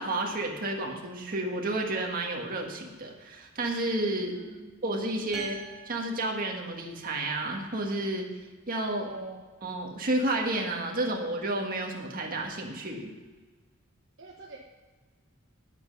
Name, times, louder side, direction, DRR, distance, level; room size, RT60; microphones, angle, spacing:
voice 1, 0.0-4.4 4.8-8.3 8.7-9.1 9.6-13.1, right 2 dB, 45° right, 1 dB, 1.7 m, -31 dB
voice 2, 4.3-4.7 9.0-9.4 14.2-14.6, right 2 dB, 60° right, -1 dB, 1.1 m, -43 dB
sound 1, 5.3-7.1, right 3 dB, ahead, 2.1 m, -46 dB
9.8 x 9.2 x 5.4 m, 1.4 s
head